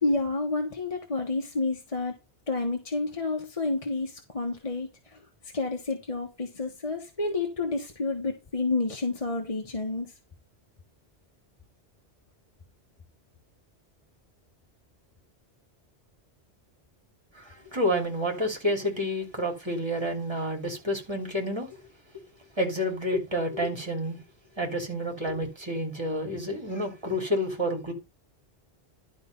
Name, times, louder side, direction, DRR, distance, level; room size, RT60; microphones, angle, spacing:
voice 1, 0.0-2.2 2.5-5.2 5.5-10.1, left 3 dB, 30° left, 1.5 m, -29 dB
voice 2, 17.3-21.7 22.6-24.2 24.6-27.9, equal, 25° right, 3.2 m, -29 dB
12.0 x 4.2 x 5.3 m
omnidirectional pair, 1.1 m